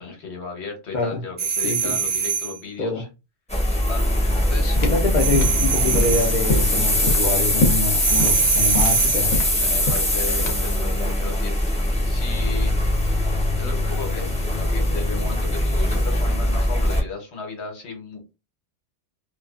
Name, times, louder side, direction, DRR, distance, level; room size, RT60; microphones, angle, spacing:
voice 1, 0.0-3.1 3.9-4.8 9.5-11.6 12.0-12.7 13.6-18.3, left 4 dB, 70° left, 1.1 m, -35 dB
sound 1, 1.4-2.6 5.2-6.4 8.0-9.3, right 7 dB, 50° right, 0.9 m, -23 dB
voice 2, 1.6-2.0 2.8-3.0 4.8-9.3, left 3 dB, 50° left, 0.5 m, -25 dB
sound 2, 3.5-17.0, left 1 dB, 10° left, 0.5 m, -22 dB
sound 3, 4.8-10.8, left 2 dB, 90° left, 1.0 m, -25 dB
2.4 x 2.3 x 2.3 m
omnidirectional pair, 1.2 m